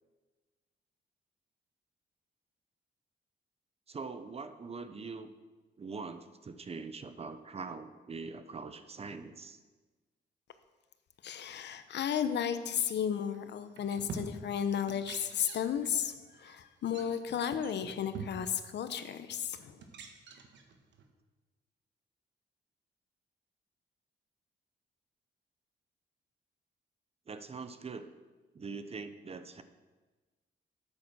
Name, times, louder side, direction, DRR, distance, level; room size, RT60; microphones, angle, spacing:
voice 1, 3.9-5.3 5.8-9.6 17.0-17.2 27.3-28.1 28.5-29.6, right 4 dB, 35° right, 10 dB, 0.7 m, -43 dB
voice 2, 11.2-19.8, left 8 dB, 75° left, 10 dB, 0.8 m, -34 dB
sound 1, 13.3-13.5 13.8-14.6 14.9-15.9 16.2-16.4 16.8-17.0 17.4-18.6 19.3-19.4 19.8-21.1, right 5 dB, 90° right, 1.2 m, -45 dB
8.7 x 8.7 x 6.1 m, 1.3 s
cardioid pair, 115°, 18 cm